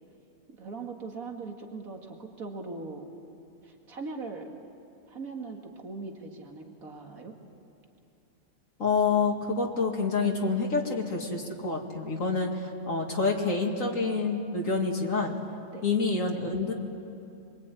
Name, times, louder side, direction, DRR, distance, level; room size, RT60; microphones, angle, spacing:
voice 1, 0.6-3.1 3.6-4.5 5.1-7.4 15.7-15.8, right 3 dB, 80° right, 2 dB, 2.6 m, -40 dB
voice 2, 8.8-15.3 15.8-16.7, left 4 dB, 65° left, 0 dB, 2.7 m, -27 dB
27.0 x 23.5 x 9.2 m, 2.8 s
omnidirectional pair, 1.5 m